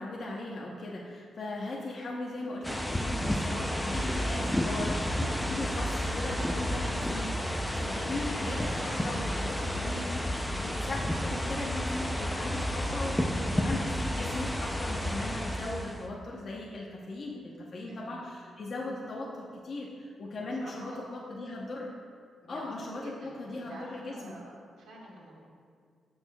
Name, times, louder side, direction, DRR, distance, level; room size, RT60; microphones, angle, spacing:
voice 1, 0.0-7.5 7.7-22.0 22.5-24.4, left 2 dB, 40° left, -4 dB, 0.7 m, -38 dB
sound 1, 2.6-16.1, equal, 5° left, 0.4 m, -31 dB
voice 2, 17.8-18.2 20.4-21.1 22.4-22.7 23.0-25.5, right 1 dB, 80° right, -3 dB, 1.7 m, -49 dB
13.5 x 6.3 x 2.2 m, 2.1 s
wide cardioid pair, 175°, 0 cm